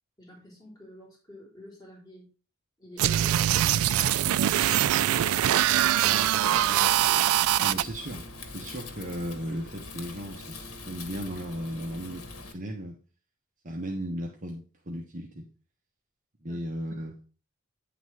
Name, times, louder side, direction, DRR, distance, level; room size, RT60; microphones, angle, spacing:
voice 1, 0.2-2.3 2.8-6.8 16.5-16.6, left 1 dB, 15° left, -6 dB, 3.7 m, -49 dB
sound 1, 3.0-7.8, right 12 dB, 70° right, 0.3 m, -23 dB
Wind, 3.6-12.5, left 3 dB, 90° left, 1.3 m, -43 dB
voice 2, 7.6-8.3 8.5-13.0 13.6-15.5 16.4-17.2, equal, 35° right, -1 dB, 1.0 m, -36 dB
9.4 x 4.0 x 4.8 m, 0.37 s
head